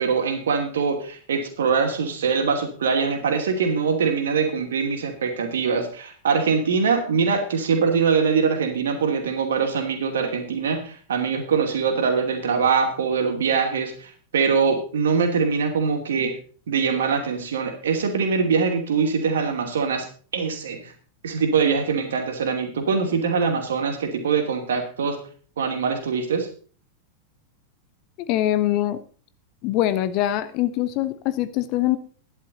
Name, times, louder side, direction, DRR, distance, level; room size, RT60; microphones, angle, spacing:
voice 1, 0.0-16.4 16.7-20.1 20.3-20.9 21.2-25.2 25.6-26.5, right 5 dB, 65° right, 5 dB, 2.6 m, -23 dB
voice 2, 28.2-29.0 29.6-32.0, left 13 dB, 40° left, 13 dB, 0.9 m, -23 dB
12.0 x 11.0 x 4.0 m, 0.42 s
figure-of-eight pair, 90°, 0 cm